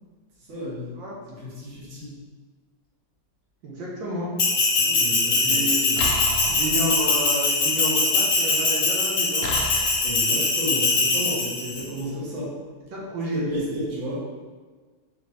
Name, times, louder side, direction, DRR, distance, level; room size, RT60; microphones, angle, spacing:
voice 1, 0.5-1.0 1.3-2.2 4.8-6.1 6.4-6.5 10.0-12.6 13.3-14.4, equal, 45° right, -7 dB, 1.4 m, -32 dB
voice 2, 3.6-4.3 5.4-5.8 6.5-9.5 12.9-13.5, right 1 dB, 85° right, -4 dB, 1.7 m, -30 dB
Bell, 4.4-11.8, left 3 dB, 55° left, 1.1 m, -22 dB
sound 1, 6.0-7.2 9.4-10.2, left 1 dB, 85° left, 0.7 m, -31 dB
4.2 x 3.2 x 3.1 m, 1.4 s
omnidirectional pair, 2.1 m